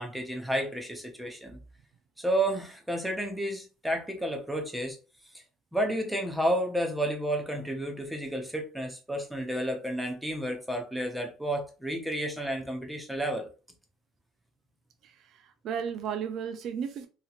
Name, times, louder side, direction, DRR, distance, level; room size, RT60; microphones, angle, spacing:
voice 1, 0.0-1.6 2.2-5.0 5.7-13.5, right 1 dB, ahead, 0.6 m, -31 dB
voice 2, 15.0-17.1, right 7 dB, 45° right, 0.3 m, -34 dB
2.9 x 2.8 x 2.4 m
cardioid pair, 150°, 0 cm